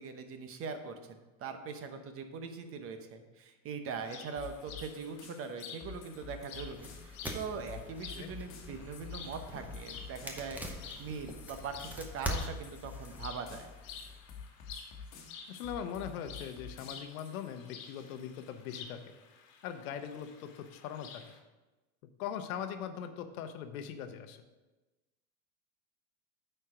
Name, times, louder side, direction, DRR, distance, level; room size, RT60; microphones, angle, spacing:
voice 1, 0.0-13.7, right 5 dB, 35° right, 7 dB, 0.8 m, -42 dB
sound 1, 4.0-21.4, left 6 dB, 65° left, 1.4 m, -51 dB
sound 2, 4.4-17.5, left 6 dB, 40° left, 1.5 m, -50 dB
sound 3, 6.6-14.2, equal, 5° right, 0.8 m, -43 dB
voice 2, 15.5-19.0 19.6-21.2 22.2-24.4, left 8 dB, 85° left, 9 dB, 0.9 m, -41 dB
9.1 x 4.5 x 5.0 m, 1.1 s
supercardioid pair, 130°, 41 cm